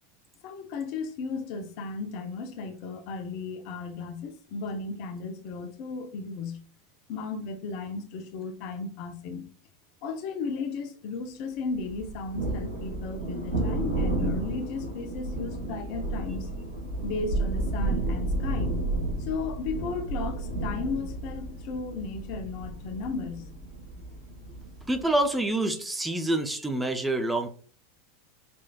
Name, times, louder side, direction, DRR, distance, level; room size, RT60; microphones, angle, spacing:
voice 1, 0.4-6.6 7.1-9.5 10.0-16.5 17.0-18.8 19.3-23.5, left 4 dB, 50° left, 0.7 m, -35 dB
Thunder, 11.9-25.1, right 2 dB, 80° right, 2.0 m, -32 dB
voice 2, 24.9-27.5, right 1 dB, 10° right, 0.6 m, -27 dB
5.2 x 3.2 x 2.3 m
figure-of-eight pair, 85°, 0 cm